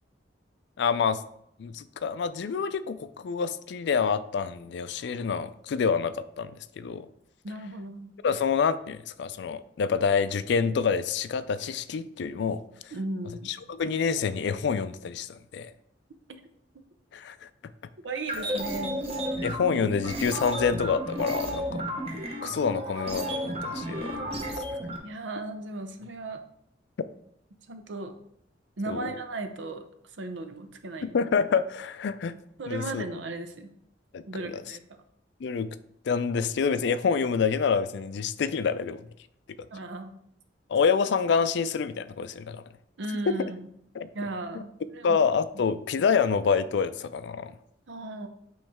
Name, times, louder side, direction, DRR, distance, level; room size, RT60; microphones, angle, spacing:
voice 1, 0.8-1.2 1.6-6.5 6.8-7.1 8.2-12.6 13.5-15.7 17.1-17.4 19.4-21.8 22.4-24.2 24.6-24.7 28.9-29.1 31.0-32.4 32.7-33.0 34.1-34.2 35.4-35.7 36.1-39.0 40.7-42.6 43.3-43.4 43.9-44.1 45.0-47.5, left 6 dB, 70° left, 14 dB, 0.4 m, -27 dB
voice 2, 7.4-8.1 12.9-13.5 18.0-19.0 19.3-19.5 25.0-26.4 27.7-28.2 28.8-29.9 30.2-31.2 32.6-33.7 34.3-34.8 39.7-40.2 43.0-43.7 44.1-45.2 45.5-45.6 47.9-48.3, right 2 dB, 85° right, 7 dB, 0.7 m, -36 dB
sound 1, 18.2-25.0, equal, 35° right, 1.0 m, -33 dB
8.5 x 3.1 x 3.5 m, 0.73 s
head